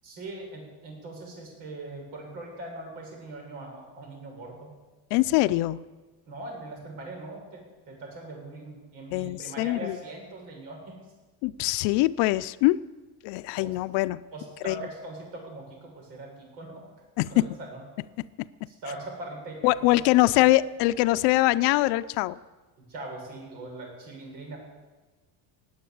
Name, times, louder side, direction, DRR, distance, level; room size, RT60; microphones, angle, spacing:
voice 1, 0.0-4.7 6.3-11.0 13.6-13.8 14.3-16.8 17.3-17.8 18.7-20.5 22.8-24.6, right 2 dB, 85° right, 0 dB, 7.1 m, -41 dB
voice 2, 5.1-5.8 9.1-10.0 11.4-12.8 13.2-14.2 14.6-14.7 17.2-17.5 19.6-22.4, left 18 dB, 70° left, 14 dB, 0.6 m, -23 dB
19.5 x 8.1 x 8.7 m, 1.2 s
cardioid pair, 165°, 41 cm